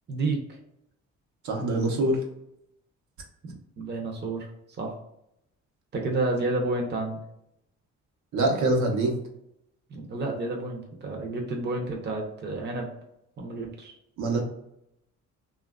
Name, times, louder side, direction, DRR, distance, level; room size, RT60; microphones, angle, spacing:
voice 1, 0.1-0.4 3.4-4.5 4.8-4.9 5.9-7.2 9.9-12.9 13.4-13.9, right 2 dB, 35° right, 1 dB, 0.7 m, -30 dB
voice 2, 1.4-2.2 8.3-9.2 14.2-14.4, right 2 dB, 75° right, 0 dB, 0.8 m, -24 dB
2.9 x 2.4 x 2.3 m, 0.79 s
cardioid pair, 90°, 30 cm